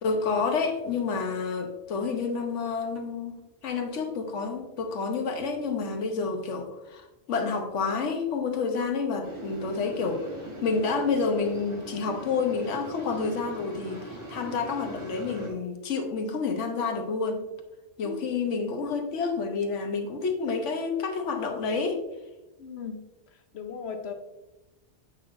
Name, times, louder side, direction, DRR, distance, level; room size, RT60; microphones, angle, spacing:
voice 1, 0.0-3.4 3.6-10.3 10.6-17.5 18.0-22.0, left 4 dB, 90° left, 5 dB, 1.2 m, -29 dB
sound 1, 9.2-15.5, right 2 dB, 25° right, 1.6 m, -41 dB
voice 2, 22.6-23.0 23.5-24.1, left 6 dB, 65° left, 6 dB, 0.9 m, -36 dB
8.0 x 5.7 x 2.5 m, 1.0 s
omnidirectional pair, 1.2 m